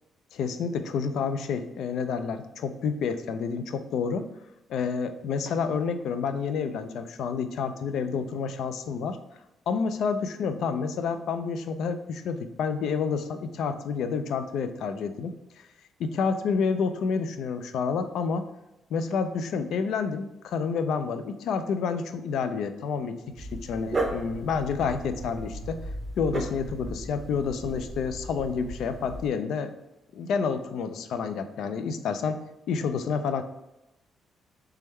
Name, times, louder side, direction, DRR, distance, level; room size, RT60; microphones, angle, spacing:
voice 1, 0.3-4.3 4.7-9.2 9.7-15.3 16.0-18.5 18.9-25.9 26.2-29.7 30.1-33.4, left 5 dB, 75° left, 10 dB, 0.3 m, -29 dB
Dog, 23.4-29.3, right 2 dB, 30° right, 0.6 m, -35 dB
3.4 x 3.3 x 3.2 m, 0.92 s
cardioid pair, 90°, 0 cm